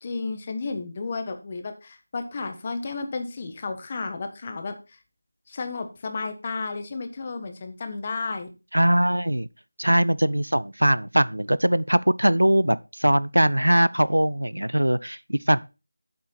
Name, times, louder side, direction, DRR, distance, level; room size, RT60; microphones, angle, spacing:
voice 1, 0.0-5.0 5.5-8.5, left 3 dB, 25° left, 1.2 m, -32 dB
voice 2, 8.7-9.5 9.8-15.6, right 1 dB, 75° right, 0.5 m, -21 dB
8.6 x 7.7 x 4.1 m
figure-of-eight pair, 165°, 0 cm